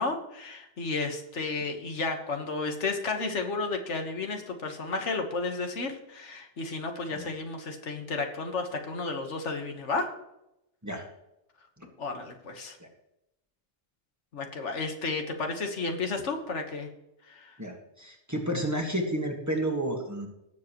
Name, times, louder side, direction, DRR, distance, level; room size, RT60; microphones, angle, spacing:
voice 1, 0.0-10.1 12.0-12.8 14.3-16.9 17.3-17.5, left 3 dB, 85° left, 4 dB, 1.7 m, -32 dB
voice 2, 17.6-20.3, right 1 dB, 15° right, 1 dB, 1.8 m, -31 dB
18.5 x 7.5 x 3.1 m, 0.86 s
omnidirectional pair, 1.2 m